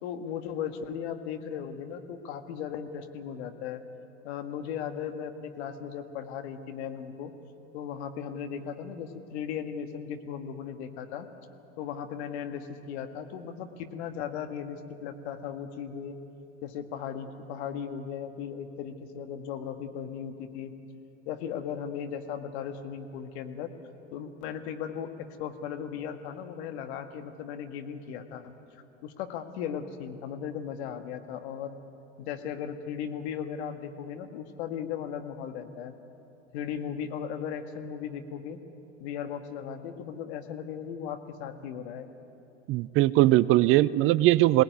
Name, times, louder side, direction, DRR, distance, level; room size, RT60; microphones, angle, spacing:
voice 1, 0.0-3.8 4.2-7.3 7.7-11.3 11.8-16.2 16.6-20.7 21.3-23.7 24.1-31.8 32.2-35.9 36.5-38.6 39.0-42.1, left 8 dB, 65° left, 7 dB, 1.8 m, -37 dB
voice 2, 42.7-44.6, right 16 dB, 35° right, 19 dB, 0.5 m, -20 dB
22.0 x 18.5 x 9.4 m, 2.9 s
hypercardioid pair, 85°, 36 cm